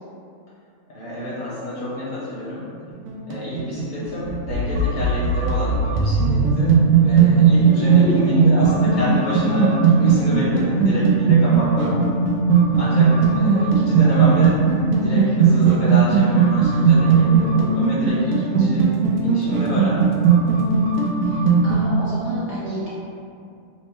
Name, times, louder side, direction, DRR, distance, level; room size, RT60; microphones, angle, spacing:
voice 1, 0.9-2.7 3.3-12.1 12.7-14.7 15.0-18.9 19.2-20.1, left 2 dB, 75° left, -9 dB, 1.5 m, -28 dB
sound 1, 2.9-21.9, right 5 dB, 80° right, 1.0 m, -17 dB
voice 2, 7.9-8.4 21.2-21.4 21.6-22.9, equal, 60° right, -11 dB, 1.0 m, -29 dB
4.0 x 2.1 x 4.5 m, 2.4 s
omnidirectional pair, 1.4 m